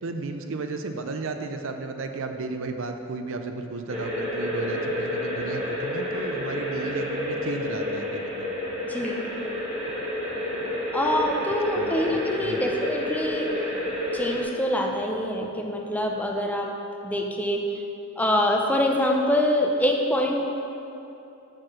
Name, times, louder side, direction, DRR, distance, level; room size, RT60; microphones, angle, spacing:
voice 1, 0.0-8.5 11.7-12.0 12.4-12.6, right 3 dB, 65° right, 6 dB, 0.5 m, -33 dB
sound 1, 3.9-14.4, left 1 dB, 30° right, 1.2 m, -29 dB
voice 2, 8.8-9.2 10.9-13.5 14.1-16.7 17.0-17.8 18.2-20.6, left 1 dB, 10° left, 1 dB, 0.5 m, -25 dB
6.4 x 4.3 x 6.3 m, 2.9 s
head